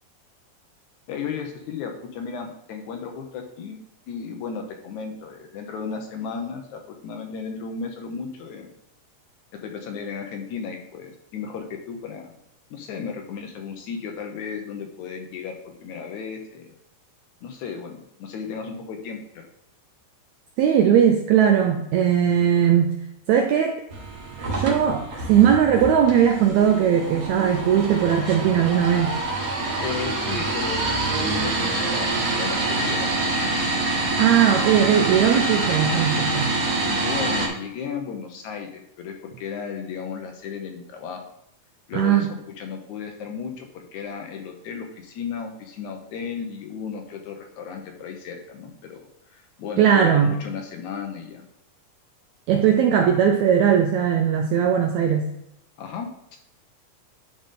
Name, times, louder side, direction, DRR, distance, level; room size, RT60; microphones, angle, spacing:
voice 1, 1.1-3.8 4.1-8.7 9.5-12.3 12.7-16.8 17.4-19.5 29.8-33.5 36.9-41.2 41.9-49.1 49.3-51.4 55.8-56.4, left 6 dB, 75° left, 3 dB, 2.0 m, -34 dB
voice 2, 20.6-22.9 23.3-23.8 24.5-29.2 34.2-36.5 41.9-42.3 49.8-50.3 52.5-55.3, right 8 dB, 85° right, 5 dB, 1.6 m, -19 dB
sound 1, 23.9-37.5, right 2 dB, 65° right, 0.9 m, -26 dB
10.5 x 3.9 x 3.7 m, 0.80 s
omnidirectional pair, 3.9 m